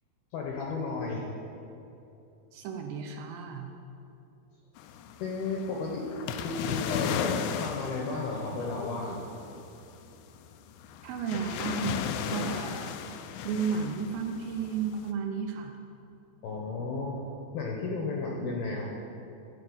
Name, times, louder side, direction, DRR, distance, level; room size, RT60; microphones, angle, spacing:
voice 1, 0.3-1.3 5.2-6.1 6.4-9.6 16.4-17.2 17.5-18.9, left 3 dB, 75° left, -1 dB, 2.3 m, -33 dB
voice 2, 2.5-3.7 11.0-13.0 13.4-15.8, right 5 dB, 80° right, 3 dB, 2.7 m, -33 dB
sound 1, 4.8-15.1, left 8 dB, 90° left, 2.4 m, -36 dB
15.0 x 5.5 x 9.3 m, 2.9 s
omnidirectional pair, 5.6 m